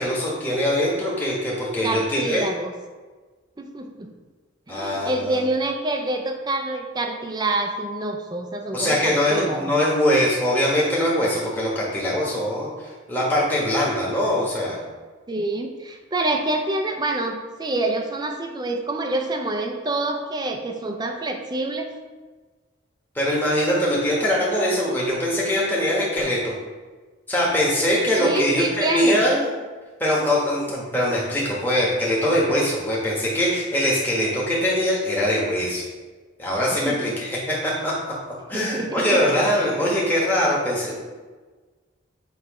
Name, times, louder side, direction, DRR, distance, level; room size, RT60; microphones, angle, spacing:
voice 1, 0.0-2.5 4.7-5.4 8.7-12.7 13.1-14.8 23.1-26.5 27.3-29.5 30.0-35.8 36.4-37.9 38.5-40.9, equal, 10° left, -6 dB, 1.4 m, -22 dB
voice 2, 1.8-2.7 3.6-4.1 4.7-9.7 15.3-21.9 28.2-29.2 36.8-37.1 38.5-39.6, right 2 dB, 20° right, 4 dB, 0.5 m, -27 dB
8.0 x 3.1 x 4.8 m, 1.4 s
head